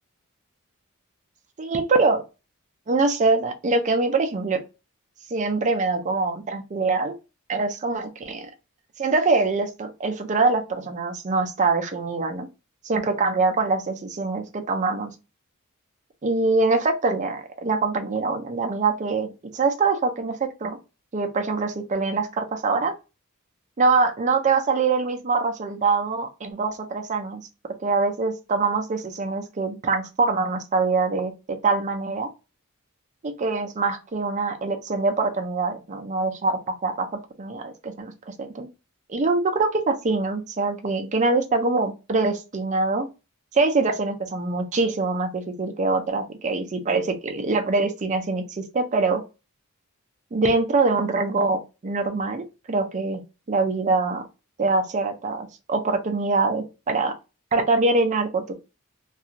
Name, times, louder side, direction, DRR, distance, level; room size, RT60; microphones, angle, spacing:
voice 1, 1.6-2.2 2.9-4.6 5.3-7.1 7.5-8.5 9.0-12.5 12.8-15.1 16.2-20.8 21.1-22.9 23.8-27.4 27.8-32.3 33.2-37.1 37.4-38.7 39.1-43.1 43.5-49.2 50.3-53.2 53.5-54.2 54.6-57.1 57.5-58.5, right 3 dB, 35° right, 5 dB, 0.4 m, -24 dB
2.4 x 2.3 x 2.8 m, 0.28 s
head